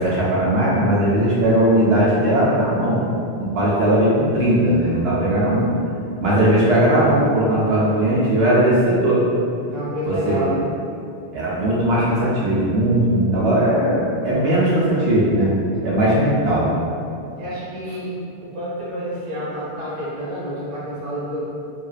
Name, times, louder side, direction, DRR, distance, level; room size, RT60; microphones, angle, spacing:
voice 1, 0.0-3.0 3.4-5.7 6.2-9.2 10.1-10.4 11.3-15.5 15.8-16.7, right 1 dB, 75° right, -7 dB, 0.8 m, -18 dB
voice 2, 9.6-10.6 15.8-16.0 17.4-21.4, equal, 35° right, -9 dB, 0.7 m, -29 dB
2.5 x 2.2 x 2.3 m, 2.5 s
omnidirectional pair, 1.0 m